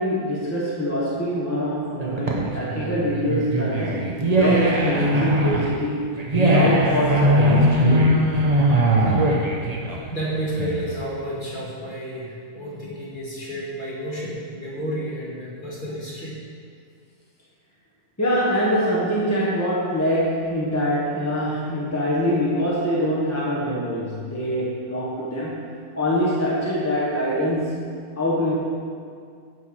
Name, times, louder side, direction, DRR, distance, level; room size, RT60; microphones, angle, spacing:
voice 1, 0.0-6.2 6.5-8.0 18.2-25.7 25.9-28.6, equal, 10° left, -6 dB, 1.2 m, -24 dB
sound 1, 2.0-11.0, right 1 dB, 30° right, 0.9 m, -20 dB
voice 2, 10.1-16.3, equal, 35° left, -6 dB, 1.9 m, -31 dB
9.4 x 4.7 x 6.2 m, 2.3 s
omnidirectional pair, 1.5 m